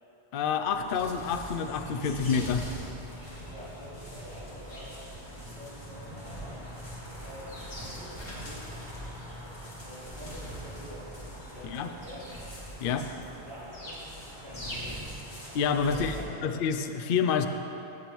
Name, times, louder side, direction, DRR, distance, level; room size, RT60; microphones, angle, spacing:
voice 1, 0.3-2.7 11.6-11.9 12.8-13.1 15.5-16.1 16.4-17.5, left 6 dB, 60° left, 7 dB, 0.7 m, -28 dB
sound 1, 0.5-16.2, equal, 25° left, 1.8 m, -41 dB
voice 2, 3.4-4.9 5.5-6.5 7.2-8.8 9.8-11.1 11.5-12.4 13.1-15.0 15.9-16.6, equal, 90° right, -13 dB, 2.8 m, -47 dB
16.0 x 6.9 x 3.1 m, 2.9 s
omnidirectional pair, 1.1 m